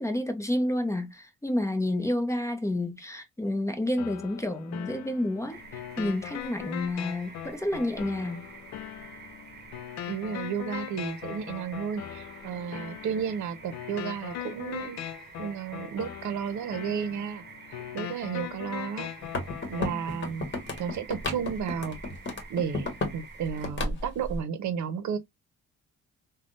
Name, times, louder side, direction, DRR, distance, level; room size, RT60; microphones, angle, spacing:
voice 1, 0.0-5.6 6.0-8.4 19.9-20.2, left 1 dB, 10° left, 0.7 m, -29 dB
sound 1, 4.0-20.0, left 12 dB, 65° left, 0.4 m, -40 dB
sound 2, 5.5-23.7, right 5 dB, 35° right, 1.0 m, -48 dB
voice 2, 10.1-15.0 15.4-17.4 17.9-19.1 19.7-20.5 20.8-22.0 22.5-25.2, right 7 dB, 70° right, 0.8 m, -32 dB
sound 3, 19.2-23.2 23.5-24.4, left 2 dB, 40° left, 1.2 m, -33 dB
3.5 x 2.3 x 2.4 m
cardioid pair, 90°, 30 cm